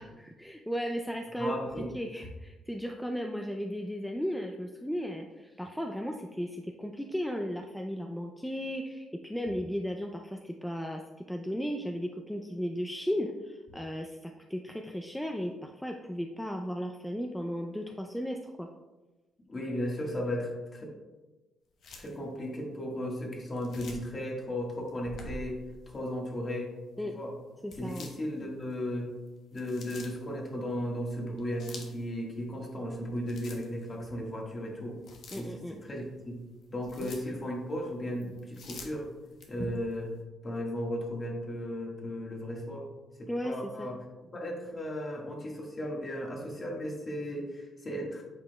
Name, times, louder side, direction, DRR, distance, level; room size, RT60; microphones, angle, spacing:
voice 1, 0.0-1.6 1.9-18.7 27.0-27.1 27.6-28.1 35.3-35.8 37.0-37.1 43.3-43.9, equal, 5° left, 2 dB, 0.4 m, -35 dB
voice 2, 1.4-1.9 19.5-20.9 21.9-25.6 25.9-26.7 27.1-27.3 27.8-29.1 29.5-35.0 35.4-36.4 36.7-39.1 39.5-40.1 40.4-42.9 43.2-44.0 44.3-48.2, equal, 30° left, -1 dB, 1.6 m, -35 dB
sound 1, 21.8-22.2 23.5-24.2 24.9-25.8 27.7-28.6 29.3-30.2 31.2-32.0 32.7-34.0 34.4-34.5 35.0-35.8 36.4-37.3 38.2-40.0, left 2 dB, 70° left, 1.1 m, -46 dB
8.4 x 5.0 x 2.3 m, 1.1 s
cardioid pair, 90°, 0 cm